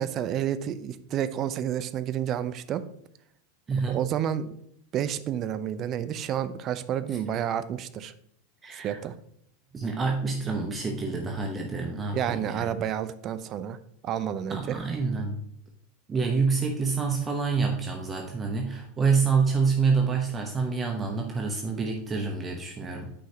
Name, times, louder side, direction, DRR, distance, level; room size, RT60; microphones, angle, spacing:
voice 1, 0.0-2.8 3.9-4.6 4.9-8.1 8.7-9.2 12.1-13.8 14.0-14.8, right 10 dB, 40° right, 13 dB, 0.5 m, -30 dB
voice 2, 3.7-4.0 8.6-9.0 9.7-12.7 14.5-15.4 16.1-23.1, right 5 dB, 25° right, 2 dB, 0.9 m, -27 dB
8.5 x 5.5 x 2.9 m, 0.72 s
hypercardioid pair, 90°, 0 cm